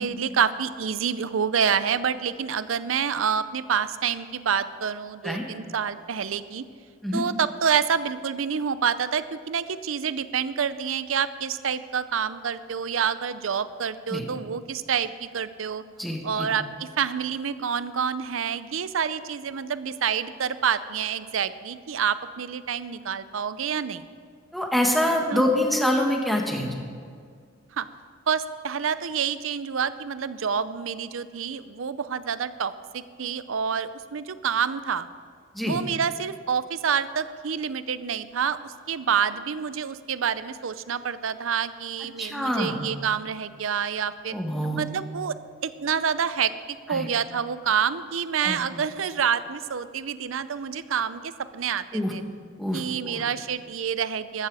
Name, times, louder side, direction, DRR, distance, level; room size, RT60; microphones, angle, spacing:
voice 1, 0.0-6.6 7.1-15.8 16.2-24.1 25.3-25.5 27.7-27.9 28.3-35.1 35.6-44.4 44.8-45.4 45.6-46.5 46.9-52.2 52.7-54.5, right 7 dB, 80° right, 14 dB, 0.6 m, -27 dB
voice 2, 16.0-16.5 24.5-26.7 35.5-35.8 42.2-42.8 44.3-44.8 46.9-47.1 48.4-48.8 51.9-52.1 52.6-53.2, left 1 dB, ahead, 1 dB, 1.6 m, -26 dB
14.5 x 13.5 x 4.9 m, 2.1 s
head